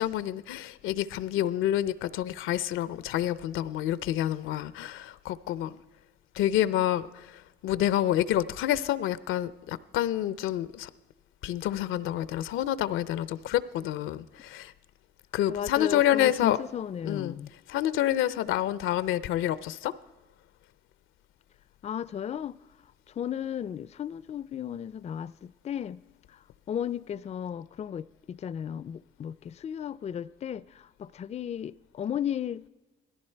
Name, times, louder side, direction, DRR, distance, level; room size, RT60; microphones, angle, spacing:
voice 1, 0.0-5.7 6.4-7.1 7.6-10.9 11.4-14.7 15.3-16.6 17.0-17.4 17.7-19.9, left 12 dB, 90° left, 0.6 m, -28 dB
voice 2, 15.5-17.5 21.8-22.6 23.1-26.0 26.3-26.4 26.7-32.7, left 9 dB, 35° left, 0.4 m, -35 dB
18.0 x 14.5 x 4.5 m
cardioid pair, 90°, 20 cm